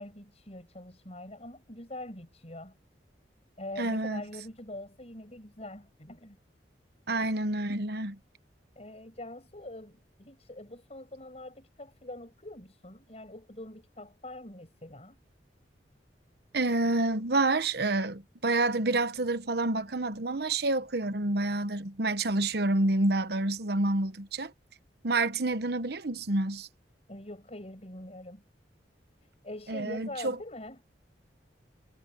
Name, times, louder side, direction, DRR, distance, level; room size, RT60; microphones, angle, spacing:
voice 1, 0.0-2.7 3.6-6.4 8.7-15.2 27.1-28.4 29.4-30.8, left 1 dB, 35° left, 6.8 m, -44 dB
voice 2, 3.8-4.2 7.1-8.2 16.5-24.5 25.0-26.7 29.7-30.4, right 2 dB, 60° right, 1.1 m, -28 dB
head